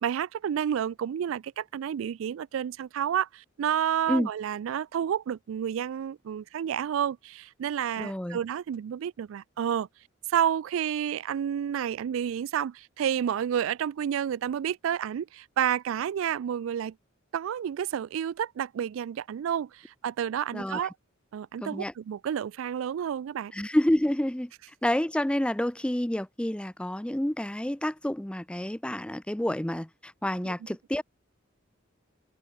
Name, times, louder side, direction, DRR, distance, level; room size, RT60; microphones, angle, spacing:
voice 1, 0.0-9.9 10.3-16.9 17.3-20.9 21.3-23.5 30.4-30.5, right 9 dB, 80° right, 0.3 m, -30 dB
voice 2, 8.0-8.4 20.5-20.8 21.6-21.9 23.5-24.5 24.8-31.0, left 1 dB, 5° left, 0.4 m, -29 dB
open air
head